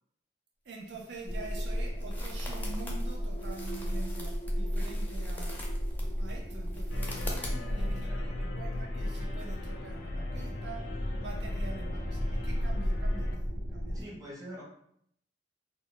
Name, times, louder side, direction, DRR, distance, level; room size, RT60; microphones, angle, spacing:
voice 1, 0.6-5.6 6.2-14.2, right 3 dB, 70° right, 0 dB, 0.5 m, -46 dB
sound 1, 0.8-8.0, left 1 dB, 10° left, 0.4 m, -46 dB
sound 2, 1.3-14.0, equal, 50° right, 0.9 m, -35 dB
sound 3, 6.9-13.4, left 1 dB, 85° left, 0.4 m, -37 dB
voice 2, 7.5-8.3 13.9-14.6, equal, 20° right, -4 dB, 0.8 m, -45 dB
2.1 x 2.1 x 3.7 m, 0.70 s
head